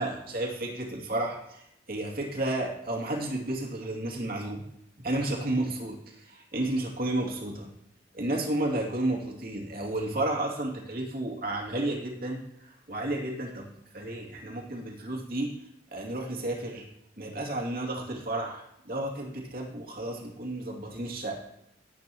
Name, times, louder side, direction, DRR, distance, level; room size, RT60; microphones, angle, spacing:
voice 1, 0.0-4.6 5.0-7.7 8.1-15.5 15.9-16.8 17.2-21.4, right 1 dB, 55° right, -1 dB, 2.5 m, -32 dB
18.5 x 8.3 x 3.0 m, 0.77 s
head